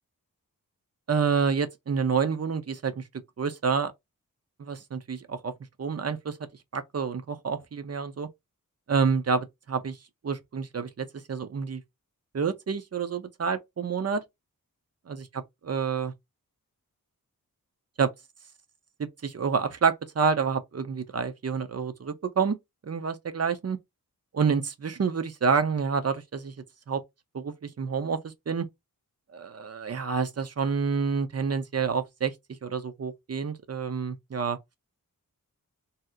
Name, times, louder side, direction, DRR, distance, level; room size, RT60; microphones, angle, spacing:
voice 1, 1.1-3.0 3.4-3.9 4.6-5.5 5.8-6.4 6.7-8.3 8.9-10.0 10.2-11.8 12.3-14.2 15.1-16.1 18.0-18.1 19.0-22.6 22.8-23.8 24.3-26.5 26.9-27.0 27.3-28.7 29.3-32.3 32.6-34.6, right 5 dB, 45° right, 0.6 m, -28 dB
2.8 x 2.0 x 3.5 m
wide cardioid pair, 65°, 36 cm